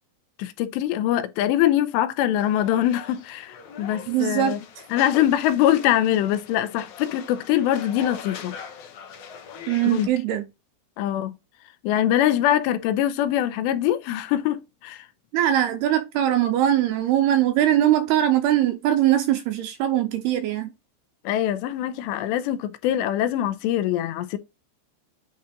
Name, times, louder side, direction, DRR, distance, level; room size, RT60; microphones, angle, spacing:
voice 1, 0.4-4.6 4.9-8.6 9.9-10.1 11.0-11.3 11.8-15.1 21.3-24.4, left 12 dB, 85° left, 2.8 m, -23 dB
sound 1, 2.3-10.1, left 7 dB, 65° left, 2.0 m, -41 dB
voice 2, 4.1-4.6 9.7-10.4 15.3-20.7, right 12 dB, 85° right, 2.4 m, -21 dB
9.3 x 4.1 x 2.4 m
omnidirectional pair, 5.1 m